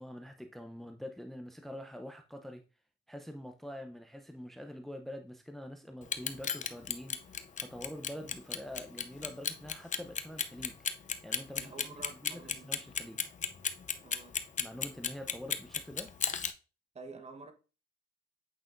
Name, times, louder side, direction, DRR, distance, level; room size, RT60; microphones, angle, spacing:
voice 1, 0.0-2.6 3.1-10.8 11.2-11.7 12.2-13.2 14.6-16.1, equal, ahead, 0.7 m, -45 dB
Clock, 6.0-16.5, left 7 dB, 40° left, 0.6 m, -33 dB
voice 2, 11.6-12.7 14.0-14.4 16.9-17.5, right 3 dB, 35° right, 1.2 m, -48 dB
8.2 x 5.5 x 2.6 m
cardioid pair, 90°, 20 cm